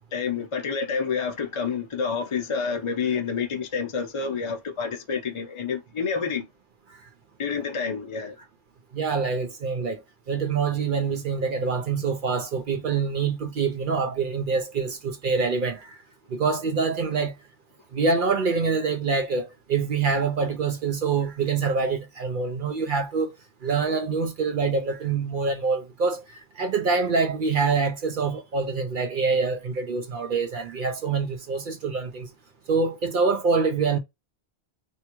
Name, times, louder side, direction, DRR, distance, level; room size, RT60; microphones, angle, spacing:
voice 1, 0.1-6.4 7.4-8.4, left 5 dB, 40° left, 0.5 m, -28 dB
voice 2, 8.9-10.0 10.3-16.0 16.3-17.3 17.9-23.3 23.6-32.3 32.7-34.0, right 4 dB, 55° right, 0.6 m, -25 dB
3.4 x 2.8 x 2.9 m
omnidirectional pair, 1.2 m